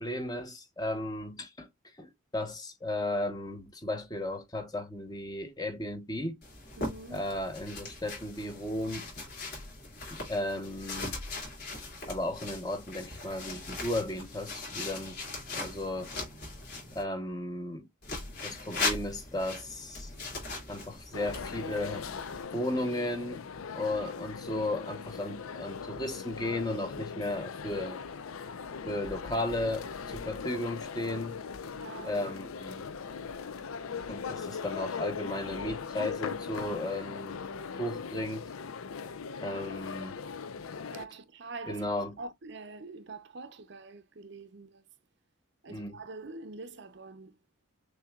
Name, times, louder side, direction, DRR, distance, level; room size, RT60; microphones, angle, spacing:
voice 1, 0.0-1.7 2.0-6.4 7.1-9.1 10.1-11.2 11.7-15.2 15.5-16.1 16.9-17.9 18.4-20.1 20.7-22.1 22.5-23.5 23.7-28.0 28.9-31.4 32.0-32.9 34.1-37.4 37.8-38.5 39.4-40.2 41.7-42.2 45.7-46.0, left 1 dB, 20° left, 0.9 m, -35 dB
sound 1, 6.4-17.0 18.0-22.4, left 3 dB, 50° left, 2.9 m, -39 dB
voice 2, 6.8-7.3 31.7-32.2 32.5-32.6 40.9-44.8 45.6-47.4, right 3 dB, 55° right, 0.6 m, -45 dB
sound 2, 21.1-41.0, left 5 dB, 85° left, 0.6 m, -39 dB
6.6 x 2.8 x 2.3 m
head